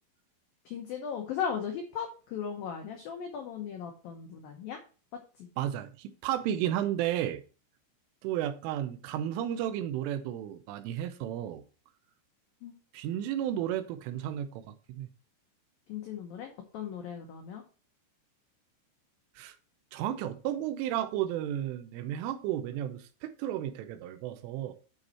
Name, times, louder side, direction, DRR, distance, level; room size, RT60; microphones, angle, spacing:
voice 1, 0.7-4.8 5.4-5.5 12.6-12.7 15.9-17.6, left 7 dB, 90° left, 2.0 m, -37 dB
voice 2, 5.6-7.4 8.2-11.6 12.9-15.1 19.4-19.6 19.9-24.7, right 11 dB, 85° right, 3.2 m, -33 dB
9.6 x 5.3 x 4.2 m
omnidirectional pair, 5.6 m